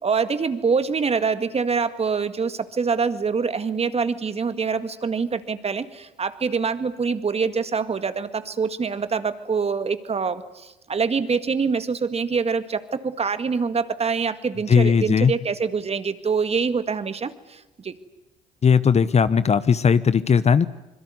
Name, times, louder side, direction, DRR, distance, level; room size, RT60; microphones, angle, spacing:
voice 1, 0.0-17.9, right 5 dB, 35° right, 11 dB, 2.0 m, -25 dB
voice 2, 14.7-15.3 18.6-20.7, left 6 dB, 35° left, 15 dB, 1.1 m, -18 dB
25.5 x 22.5 x 9.7 m, 1.0 s
hypercardioid pair, 60°, 18 cm